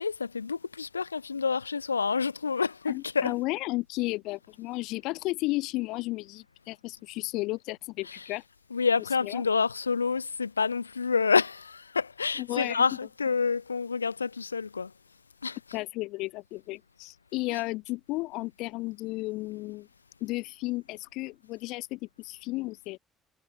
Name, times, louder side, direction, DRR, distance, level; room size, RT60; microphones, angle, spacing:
voice 1, 0.0-3.4 8.0-8.4 8.7-14.9 15.4-15.8 17.5-17.6, left 5 dB, 85° left, 0.5 m, -28 dB
voice 2, 2.9-8.4 9.2-9.4 12.4-12.8 15.7-19.9 20.2-23.0, left 21 dB, 65° left, 2.8 m, -33 dB
figure-of-eight pair, 50°, 0 cm